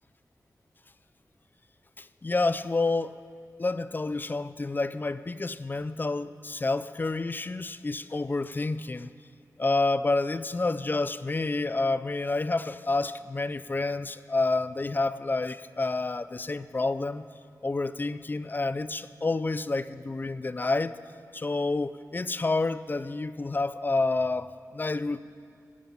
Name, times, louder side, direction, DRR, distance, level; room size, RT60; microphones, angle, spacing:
voice 1, 2.0-3.1 3.6-9.1 9.6-17.3 17.6-20.9 21.3-25.2, left 3 dB, 30° left, 15 dB, 0.3 m, -29 dB
14.5 x 9.0 x 5.6 m, 2.2 s
wide cardioid pair, 80°, 6 cm